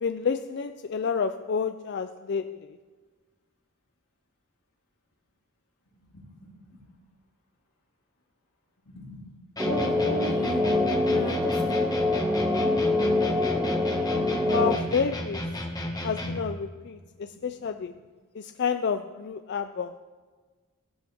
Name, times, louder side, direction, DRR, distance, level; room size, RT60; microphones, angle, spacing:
voice 1, 0.0-2.6 14.4-15.4 16.0-17.0 17.4-17.9 18.6-20.0, left 6 dB, 50° left, 0.4 m, -29 dB
voice 2, 5.9-6.9 8.9-9.3 9.6-12.1 17.0-18.0, left 1 dB, 85° left, 3.7 m, -37 dB
sound 1, 9.6-16.5, left 1 dB, 15° left, 1.2 m, -34 dB
sound 2, 9.6-14.8, left 2 dB, 10° right, 0.6 m, -25 dB
16.0 x 12.0 x 3.5 m
head